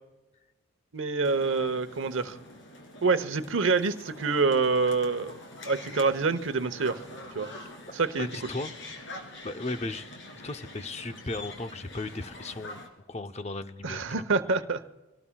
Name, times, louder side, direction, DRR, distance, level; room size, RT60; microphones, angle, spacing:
voice 1, 0.9-2.4 3.0-5.3 5.7-7.0 7.3-7.5 7.9-8.3 13.8-14.8, right 4 dB, 65° right, 11 dB, 0.9 m, -26 dB
sound 1, 1.2-12.9, left 1 dB, 60° left, 3.0 m, -45 dB
voice 2, 8.2-8.8 9.4-10.1 10.4-14.2, left 2 dB, 30° left, 8 dB, 0.7 m, -36 dB
25.0 x 18.0 x 2.3 m, 1.1 s
head